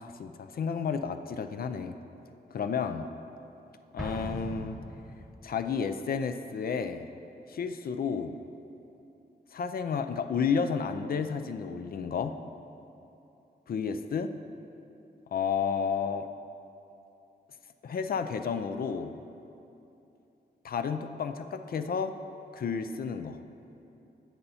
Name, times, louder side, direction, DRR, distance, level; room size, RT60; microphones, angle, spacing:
voice 1, 0.0-1.9 2.5-3.1 3.9-4.8 5.4-7.1 7.5-8.4 9.5-12.4 13.7-14.3 15.3-16.3 17.8-19.1 20.6-22.1 22.5-23.4, left 6 dB, 60° left, 9 dB, 0.4 m, -31 dB
Explosion, 4.0-5.6, equal, ahead, 1.0 m, -40 dB
15.5 x 5.6 x 4.2 m, 2.8 s
wide cardioid pair, 140°, 18 cm